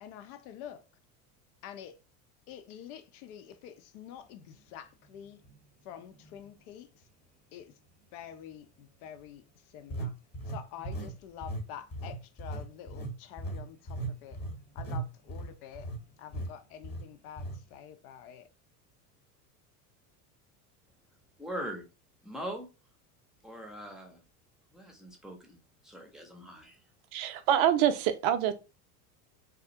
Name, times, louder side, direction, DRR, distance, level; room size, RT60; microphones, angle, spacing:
voice 1, 0.0-0.8 1.6-2.0 2.5-5.4 5.8-7.1 7.5-7.8 8.1-10.2 10.5-14.4 14.7-15.9 16.2-18.5, left 9 dB, 70° left, 0.6 m, -47 dB
sound 1, 5.4-5.6 6.2-6.3 9.9-11.2 11.4-11.7 11.9-16.0 16.3-16.5 16.8-17.0 17.4-17.6, right 2 dB, 20° left, 1.0 m, -37 dB
voice 2, 21.4-21.8 22.2-22.7 23.4-24.2 24.7-25.6 25.8-26.8, equal, ahead, 0.6 m, -41 dB
voice 3, 27.1-28.5, right 10 dB, 60° right, 0.5 m, -25 dB
2.3 x 2.0 x 2.7 m
hypercardioid pair, 90°, 46 cm